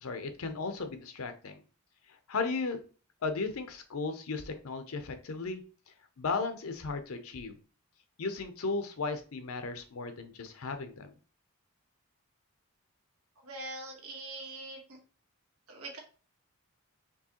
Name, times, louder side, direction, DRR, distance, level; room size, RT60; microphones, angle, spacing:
voice 1, 0.0-1.6 2.3-2.8 3.2-5.6 6.2-7.5 8.2-11.1, left 4 dB, 70° left, 8 dB, 0.6 m, -35 dB
voice 2, 13.4-14.8 15.7-16.0, right 2 dB, 80° right, 0 dB, 1.4 m, -42 dB
4.5 x 3.1 x 2.9 m, 0.37 s
head